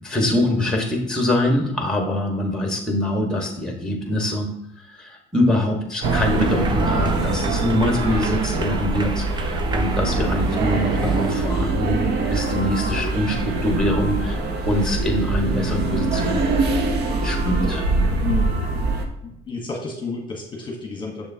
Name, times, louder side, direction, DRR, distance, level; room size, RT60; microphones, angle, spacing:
voice 1, 0.0-4.5 4.8-14.4 14.7-16.4 17.2-17.9, left 1 dB, 5° left, 2 dB, 1.5 m, -24 dB
sound 1, 6.0-11.3, right 4 dB, 25° right, 0.6 m, -32 dB
sound 2, 6.0-19.0, right 2 dB, 80° right, 1.0 m, -23 dB
voice 2, 18.2-18.6 19.2-21.3, left 4 dB, 30° left, 0 dB, 1.3 m, -31 dB
7.0 x 6.6 x 2.8 m, 0.83 s
cardioid pair, 110°, 17 cm